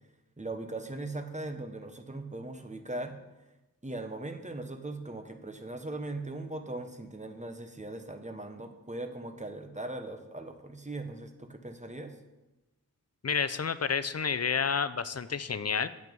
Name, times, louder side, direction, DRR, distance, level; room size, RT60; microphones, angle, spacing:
voice 1, 0.4-3.1 3.8-12.1, right 2 dB, 20° right, 6 dB, 1.0 m, -39 dB
voice 2, 13.2-15.9, left 6 dB, 45° left, 13 dB, 0.5 m, -30 dB
9.2 x 7.7 x 5.3 m, 1.0 s
wide cardioid pair, 55°, 35 cm